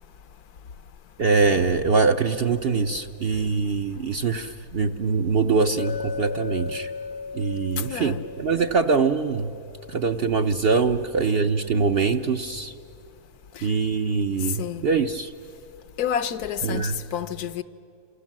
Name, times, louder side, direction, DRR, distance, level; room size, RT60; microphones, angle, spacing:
voice 1, 1.2-6.9 7.3-9.5 9.9-12.7 13.6-15.3 16.6-17.0, right 4 dB, 50° right, 0.8 m, -23 dB
Chink clink, 5.8-10.2, left 5 dB, 55° left, 0.9 m, -36 dB
voice 2, 7.9-8.2 14.6-14.9 16.0-17.6, left 9 dB, 75° left, 1.3 m, -29 dB
28.0 x 26.5 x 7.5 m
omnidirectional pair, 1.7 m